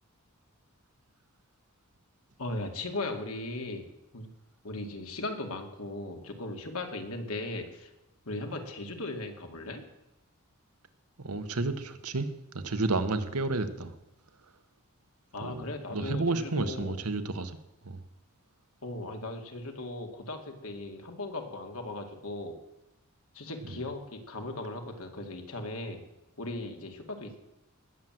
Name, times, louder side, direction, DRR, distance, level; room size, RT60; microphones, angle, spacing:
voice 1, 2.4-3.8 4.1-4.3 4.6-7.9 8.3-9.8 15.3-17.0 18.8-22.6 23.3-26.0 26.4-27.4, left 2 dB, 70° left, 4 dB, 2.3 m, -37 dB
voice 2, 11.2-13.9 15.4-15.6 15.9-17.6 17.8-18.0 23.7-23.8, right 3 dB, 80° right, 9 dB, 1.3 m, -31 dB
19.0 x 7.6 x 7.7 m, 0.93 s
head